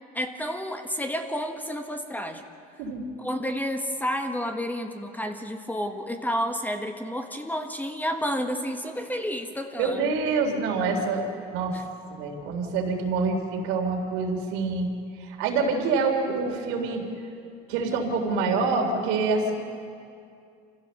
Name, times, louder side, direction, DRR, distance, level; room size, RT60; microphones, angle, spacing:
voice 1, 0.1-2.5 3.2-10.1 11.7-11.8, equal, 10° left, 6 dB, 1.5 m, -30 dB
voice 2, 9.8-11.8 12.1-14.9 15.2-17.0 17.7-19.5, right 4 dB, 75° right, 2 dB, 3.5 m, -26 dB
26.0 x 16.0 x 6.9 m, 2.4 s
supercardioid pair, 100°, 21 cm